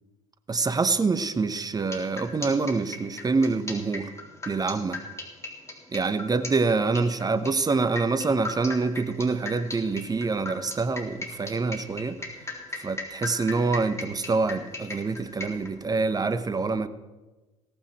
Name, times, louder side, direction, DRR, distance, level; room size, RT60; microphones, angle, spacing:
voice 1, 0.5-4.1 4.5-5.0 5.9-12.2 12.8-16.9, right 4 dB, 20° right, 12 dB, 1.1 m, -26 dB
sound 1, 1.8-15.7, left 2 dB, 15° left, 3.7 m, -37 dB
17.0 x 15.5 x 4.5 m, 1.2 s
figure-of-eight pair, 60°, 17 cm